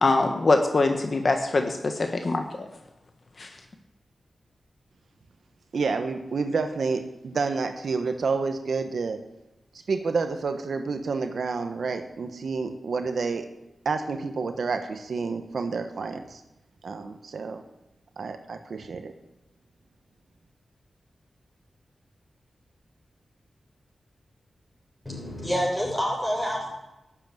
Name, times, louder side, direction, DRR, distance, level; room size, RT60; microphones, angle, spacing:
voice 1, 0.0-2.7 3.4-3.5, left 3 dB, 50° left, 4 dB, 1.3 m, -23 dB
voice 2, 5.7-9.2 9.9-13.5 13.8-16.4 16.8-17.6 18.2-19.1, right 4 dB, 75° right, 7 dB, 1.2 m, -29 dB
voice 3, 25.0-26.7, equal, 10° left, -2 dB, 6.5 m, -27 dB
12.0 x 8.1 x 9.0 m, 0.95 s
wide cardioid pair, 80°, 0 cm